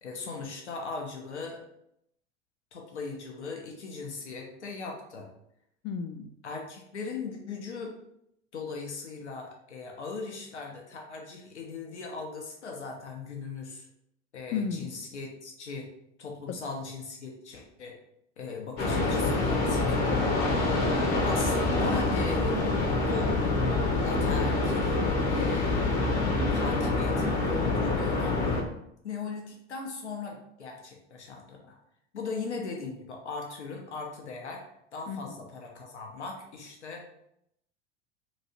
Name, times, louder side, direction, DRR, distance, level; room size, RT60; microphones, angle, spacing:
voice 1, 0.0-1.6 2.7-5.3 6.4-7.9 8.5-13.9 14.3-15.9 16.2-18.0 18.4-20.2 21.2-23.3 24.0-25.0 25.3-26.0 26.5-28.5 29.0-31.8 32.1-34.7 34.9-37.0, left 4 dB, 85° left, 1 dB, 0.8 m, -39 dB
voice 2, 5.8-6.3 14.5-14.9 16.5-16.6 20.6-21.2 35.1-35.4, left 6 dB, 35° left, 9 dB, 0.4 m, -35 dB
sound 1, 18.8-28.6, left 2 dB, 55° left, 1.0 m, -26 dB
3.0 x 2.6 x 4.1 m, 0.77 s
figure-of-eight pair, 80°, 34 cm